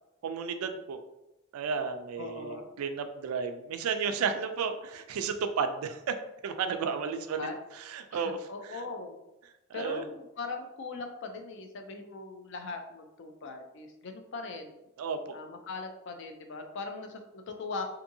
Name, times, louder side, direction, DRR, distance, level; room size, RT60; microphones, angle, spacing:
voice 1, 0.2-1.0 1.5-6.2 6.4-7.5 7.9-8.8 9.7-10.0 15.0-15.4, right 6 dB, 85° right, 8 dB, 0.3 m, -33 dB
voice 2, 2.2-2.6 7.1-7.6 8.1-9.2 9.7-14.7 15.3-17.8, left 3 dB, 60° left, 5 dB, 0.4 m, -40 dB
2.6 x 2.6 x 2.6 m, 0.93 s
head